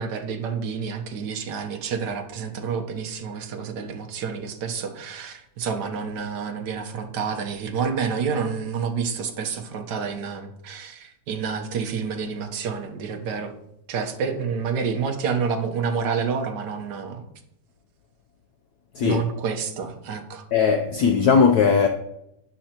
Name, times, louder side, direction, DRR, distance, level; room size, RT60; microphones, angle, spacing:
voice 1, 0.0-13.5 13.9-17.2 19.0-20.4, right 6 dB, 55° right, 1.5 m, -29 dB
voice 2, 20.5-21.9, left 6 dB, 70° left, 0.9 m, -18 dB
12.0 x 9.8 x 2.9 m
omnidirectional pair, 2.4 m